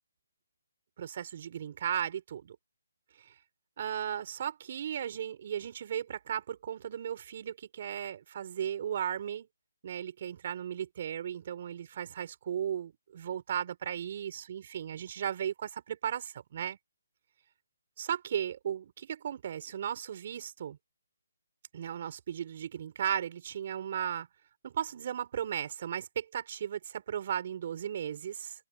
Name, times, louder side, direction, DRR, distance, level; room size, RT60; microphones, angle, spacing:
voice 1, 1.0-2.6 3.2-3.3 3.8-9.5 9.8-16.8 18.0-20.8 21.7-24.3 24.6-28.5, right 9 dB, 45° right, 4.5 m, -36 dB
figure-of-eight pair, 155°, 0 cm